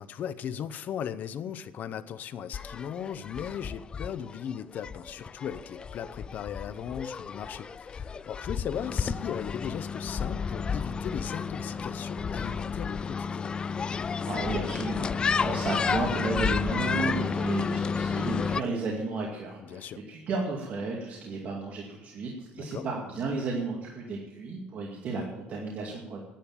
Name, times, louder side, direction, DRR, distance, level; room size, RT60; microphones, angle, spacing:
voice 1, 0.0-13.5 17.2-17.3 19.6-20.0 22.6-22.9, left 8 dB, 50° left, 12 dB, 0.7 m, -37 dB
sound 1, 2.5-18.6, left 5 dB, 25° left, 0.3 m, -31 dB
voice 2, 14.2-26.2, right 3 dB, 45° right, -1 dB, 2.2 m, -33 dB
10.5 x 9.7 x 8.7 m, 1.1 s
cardioid pair, 145°, 4 cm